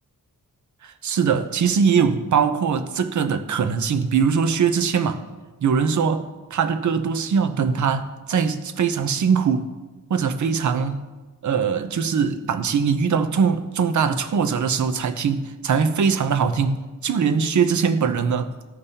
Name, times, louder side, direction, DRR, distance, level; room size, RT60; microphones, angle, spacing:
voice 1, 0.8-5.2 5.6-9.7 10.1-11.0 11.4-18.5, right 6 dB, 60° right, 9 dB, 0.7 m, -21 dB
15.0 x 5.3 x 2.8 m, 1.2 s
wide cardioid pair, 110°, 33 cm